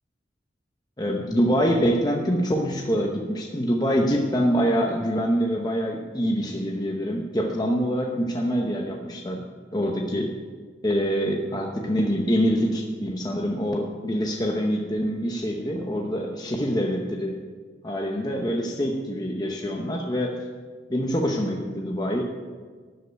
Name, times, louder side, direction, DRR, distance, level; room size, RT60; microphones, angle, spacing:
voice 1, 1.0-9.4 9.7-10.3 10.8-17.3 17.8-20.3 20.9-22.2, equal, 20° left, 1 dB, 0.8 m, -25 dB
12.5 x 5.5 x 9.1 m, 1.5 s
head